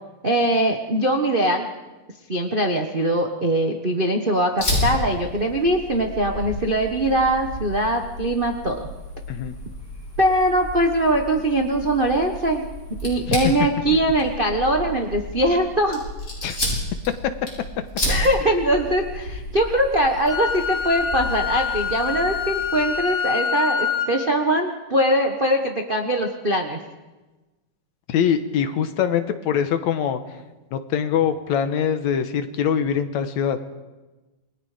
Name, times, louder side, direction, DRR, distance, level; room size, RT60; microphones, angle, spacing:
voice 1, 0.2-1.7 2.3-8.9 10.2-12.7 13.0-16.0 18.1-26.8, right 1 dB, 70° right, 2 dB, 0.5 m, -22 dB
Fire, 4.6-22.9, left 1 dB, 25° left, 6.7 m, -32 dB
voice 2, 16.4-16.8 28.1-30.2 30.7-33.7, left 8 dB, 75° left, 9 dB, 2.5 m, -23 dB
Wind instrument woodwind instrument, 20.3-24.1, left 7 dB, 5° right, 2.8 m, -26 dB
28.0 x 21.0 x 5.1 m, 1.1 s
omnidirectional pair, 3.4 m